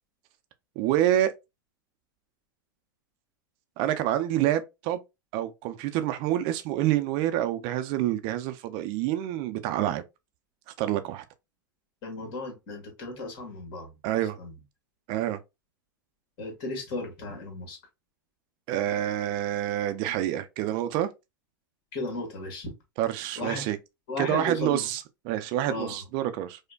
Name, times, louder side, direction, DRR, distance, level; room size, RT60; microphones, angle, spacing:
voice 1, 0.8-1.3 3.8-5.0 5.3-10.0 10.8-11.2 14.0-14.4 15.1-15.4 18.7-21.1 23.0-23.8 24.2-26.6, right 12 dB, 45° right, 0.5 m, -27 dB
voice 2, 12.0-14.0 14.4-14.5 16.4-17.8 21.9-22.7 23.4-23.6 24.1-24.9 25.7-26.0, left 2 dB, 45° left, 1.7 m, -35 dB
4.9 x 2.1 x 2.2 m
figure-of-eight pair, 95°, 11 cm